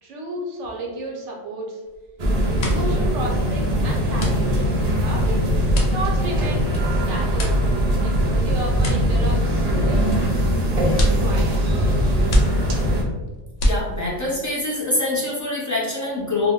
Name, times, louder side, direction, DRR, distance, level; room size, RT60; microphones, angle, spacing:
voice 1, 0.0-1.8 2.6-4.5 4.8-5.4 5.9-7.6 8.0-10.1 10.8-12.4, right 2 dB, 75° right, -1 dB, 0.9 m, -33 dB
sound 1, 1.9-2.1 2.4-14.3, equal, 65° left, 0.8 m, -27 dB
sound 2, 2.2-13.0, equal, 50° right, 0.5 m, -21 dB
voice 2, 13.6-16.5, left 2 dB, 25° left, -7 dB, 0.4 m, -24 dB
2.2 x 2.1 x 3.5 m, 1.2 s
omnidirectional pair, 1.3 m